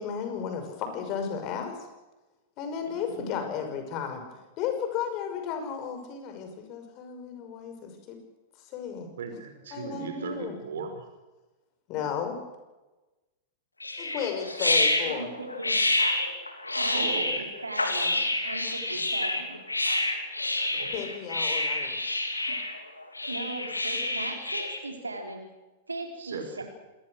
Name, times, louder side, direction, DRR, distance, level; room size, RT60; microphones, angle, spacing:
voice 1, 0.0-1.8 2.6-4.2 4.6-8.2 8.6-9.1 9.7-10.6 11.9-12.4 14.0-15.3 20.9-22.0, left 7 dB, 40° left, 6 dB, 5.8 m, -34 dB
voice 2, 9.2-11.0 15.2-15.4 16.9-17.3 20.6-20.9 26.2-26.6, right 5 dB, 65° right, 6 dB, 5.6 m, -37 dB
sound 1, 13.8-24.8, left 2 dB, 90° left, 3.0 m, -28 dB
voice 3, 15.1-15.7 16.7-19.6 23.3-25.5 25.9-26.6, right 2 dB, 85° right, 4 dB, 4.2 m, -38 dB
26.5 x 20.0 x 6.5 m, 1.1 s
figure-of-eight pair, 95°, 0 cm